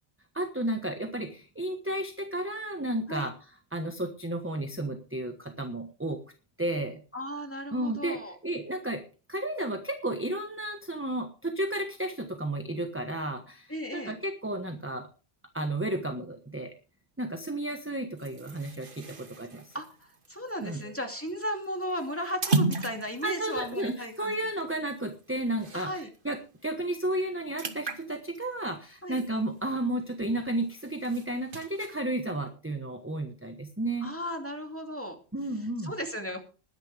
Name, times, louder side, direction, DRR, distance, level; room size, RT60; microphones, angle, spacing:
voice 1, 0.3-3.3 3.7-6.2 6.6-7.0 7.7-9.0 9.3-15.1 15.5-16.7 17.2-19.7 20.6-20.8 23.2-34.1 35.3-35.9, right 1 dB, 10° right, 6 dB, 1.2 m, -32 dB
voice 2, 7.1-8.4 13.7-14.1 19.7-24.4 25.7-26.1 29.0-29.2 34.0-35.2 35.8-36.4, equal, 10° left, 3 dB, 2.5 m, -35 dB
sound 1, 18.2-26.2 26.6-26.7 27.0-30.0 30.4-32.0, right 2 dB, 55° right, 1.6 m, -36 dB
20.0 x 10.5 x 3.4 m, 0.36 s
omnidirectional pair, 1.1 m